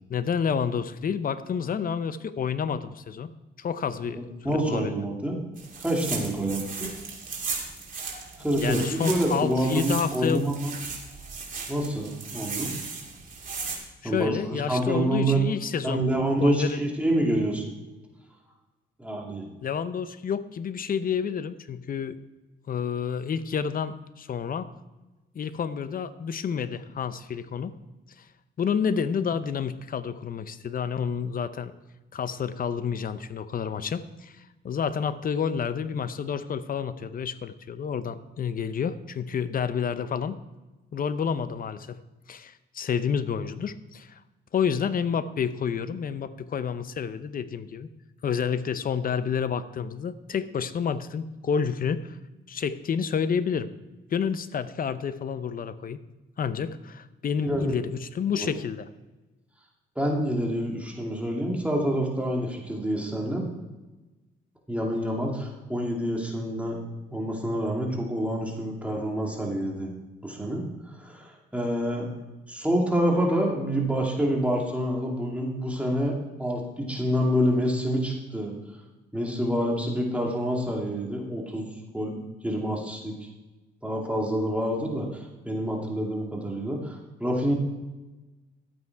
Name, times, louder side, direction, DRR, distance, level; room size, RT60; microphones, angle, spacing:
voice 1, 0.1-3.3 3.6-4.9 8.6-10.5 14.0-16.0 16.4-16.8 19.6-22.2 22.7-24.7 25.3-27.7 28.2-28.3 28.6-31.7 32.1-40.4 40.9-42.0 42.3-44.2 44.5-47.9 48.2-52.2 52.5-53.7 54.1-56.0 56.4-58.9, left 7 dB, 45° left, 13 dB, 0.7 m, -29 dB
voice 2, 4.1-5.4 5.8-6.9 8.4-10.7 11.7-12.7 14.0-15.4 15.8-17.6 19.0-19.5 57.4-57.7 58.3-58.5 60.0-63.5 64.7-66.8 67.1-69.9 70.2-72.1 72.5-78.5 79.1-81.7 81.9-83.1 83.8-87.5, right 1 dB, 5° right, -1 dB, 2.4 m, -27 dB
sound 1, 5.6-13.8, right 4 dB, 40° right, 2.8 m, -36 dB
12.5 x 8.6 x 4.7 m, 1.1 s
cardioid pair, 90°, 20 cm